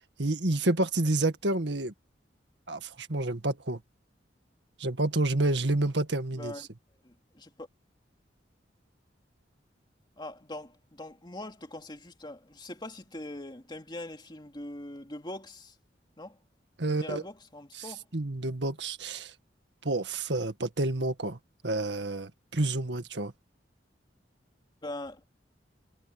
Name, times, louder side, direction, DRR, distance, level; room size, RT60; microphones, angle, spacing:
voice 1, 0.2-1.9 2.7-3.8 4.8-6.7 16.8-17.2 17.7-19.3 19.8-21.4 21.6-23.3, right 2 dB, 70° right, 1.9 m, -29 dB
voice 2, 7.0-7.7 10.2-15.7 16.2-16.4 16.9-18.1 24.8-25.2, left 1 dB, 25° left, 2.6 m, -42 dB
head